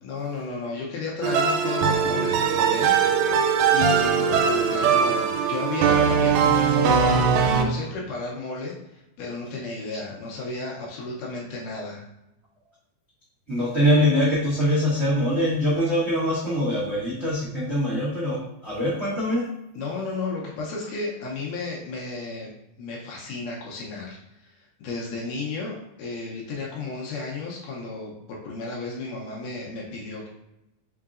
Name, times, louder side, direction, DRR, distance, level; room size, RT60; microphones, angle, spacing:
voice 1, 0.0-3.0 3.7-12.0 19.8-22.5 22.8-30.3, left 3 dB, 75° left, -3 dB, 2.1 m, -33 dB
sound 1, 1.2-7.7, right 6 dB, 85° right, 2.4 m, -21 dB
voice 2, 13.5-19.4, equal, 45° right, -9 dB, 0.8 m, -23 dB
5.6 x 3.7 x 2.5 m, 0.88 s
omnidirectional pair, 4.2 m